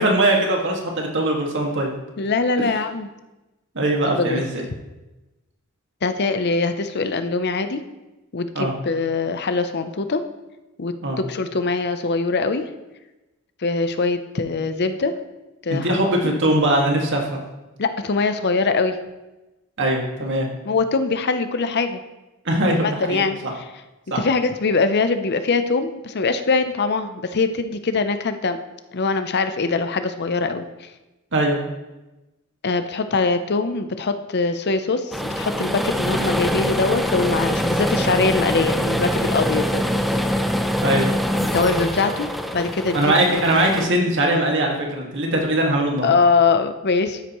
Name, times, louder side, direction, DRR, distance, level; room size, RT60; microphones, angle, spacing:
voice 1, 0.0-1.9 2.6-2.7 3.8-4.6 8.5-8.7 11.0-11.2 15.7-17.4 19.8-20.5 22.5-23.5 24.1-24.2 31.3-31.6 40.8-41.1 42.9-46.1, right 1 dB, 60° right, 0 dB, 1.9 m, -21 dB
voice 2, 2.2-3.1 4.0-4.4 6.0-7.8 8.3-10.2 10.8-12.6 13.6-15.1 15.6-16.4 17.8-19.0 20.7-22.0 22.8-23.6 24.1-28.6 28.9-30.9 32.6-40.3 41.4-42.3 42.5-43.6 46.0-47.2, left 4 dB, 50° left, 9 dB, 0.6 m, -22 dB
sound 1, 35.1-43.9, equal, ahead, 0.5 m, -24 dB
12.5 x 9.8 x 3.1 m, 1.1 s
head